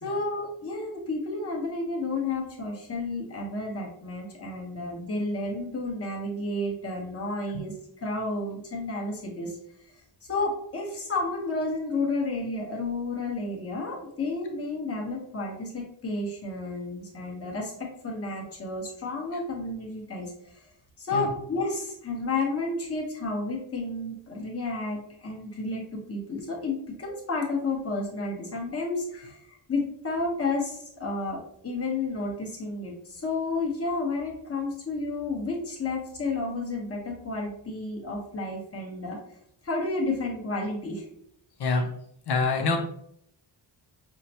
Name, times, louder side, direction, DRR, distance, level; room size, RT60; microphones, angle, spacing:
voice 1, 0.0-7.7 8.0-9.5 10.3-20.5 21.0-39.2 39.6-41.1, left 2 dB, 30° left, -2 dB, 1.0 m, -31 dB
voice 2, 42.3-42.8, left 3 dB, 60° left, 3 dB, 0.6 m, -25 dB
5.7 x 2.1 x 2.8 m, 0.69 s
wide cardioid pair, 160°, 45 cm